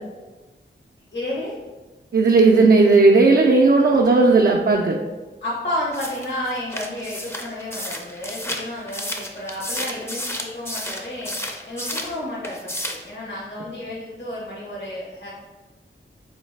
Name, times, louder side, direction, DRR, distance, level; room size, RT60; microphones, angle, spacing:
voice 1, 1.1-1.5 5.4-11.4 11.7-15.3, left 1 dB, 60° left, -6 dB, 1.0 m, -31 dB
voice 2, 2.1-5.0, right 3 dB, 50° right, 0 dB, 0.4 m, -15 dB
sound 1, 5.9-12.1 12.4-13.1, left 1 dB, 10° left, 0.5 m, -31 dB
3.8 x 3.1 x 3.2 m, 1.2 s
cardioid pair, 45°, 21 cm